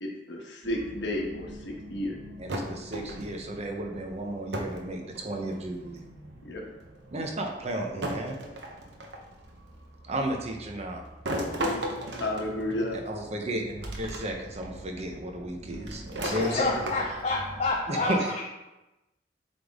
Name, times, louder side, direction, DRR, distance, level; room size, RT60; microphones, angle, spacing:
voice 1, 0.0-2.2 6.4-6.6 12.0-13.0, left 1 dB, 75° left, 0 dB, 1.2 m, -32 dB
sound 1, 0.6-17.7, equal, 85° right, 1.2 m, -47 dB
voice 2, 2.4-6.1 7.1-8.4 10.0-11.0 12.9-13.6 14.0-16.7 17.9-18.2, right 1 dB, 35° right, 2 dB, 0.8 m, -33 dB
sound 2, 2.5-3.5 4.5-4.9 5.1-5.8 6.8-6.9 8.0-9.3 11.3-13.1 13.8-14.2 14.6-14.7 15.9-17.3, right 1 dB, 70° right, 0.9 m, -34 dB
voice 3, 16.2-18.4, left 2 dB, 35° left, 0 dB, 0.5 m, -28 dB
7.7 x 3.5 x 3.5 m, 1.0 s
head